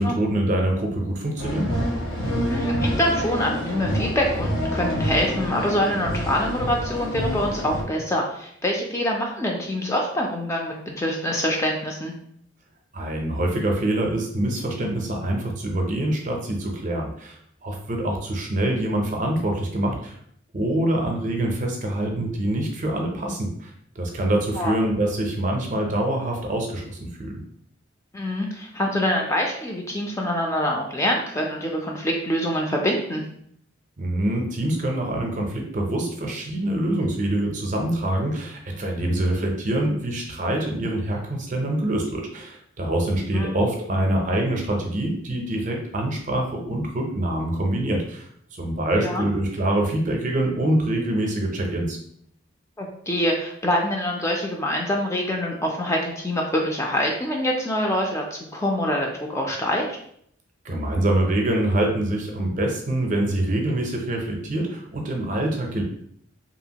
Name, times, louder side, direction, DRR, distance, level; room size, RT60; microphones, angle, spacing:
voice 1, 0.0-1.7 12.9-20.1 20.5-27.4 34.0-48.3 48.5-52.0 60.6-65.8, right 1 dB, 40° right, 2 dB, 0.5 m, -25 dB
sound 1, 1.4-7.8, equal, 80° left, 1.1 m, -27 dB
voice 2, 2.5-12.1 24.6-24.7 28.1-33.2 43.3-43.5 49.0-49.3 52.8-60.0, left 1 dB, 15° left, 0 dB, 0.3 m, -25 dB
2.8 x 2.4 x 2.8 m, 0.68 s
head